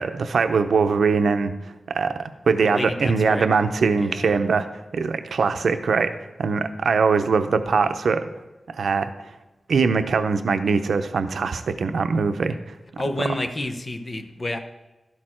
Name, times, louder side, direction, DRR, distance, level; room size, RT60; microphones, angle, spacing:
voice 1, 0.0-2.1 2.5-4.7 4.9-6.1 6.4-8.2 8.8-9.1 9.7-12.6, right 5 dB, 85° right, 9 dB, 0.6 m, -22 dB
voice 2, 2.6-3.5 4.0-4.4 13.0-14.6, left 1 dB, 30° left, 6 dB, 0.8 m, -29 dB
12.0 x 6.5 x 4.4 m, 1.1 s
wide cardioid pair, 145°, 0 cm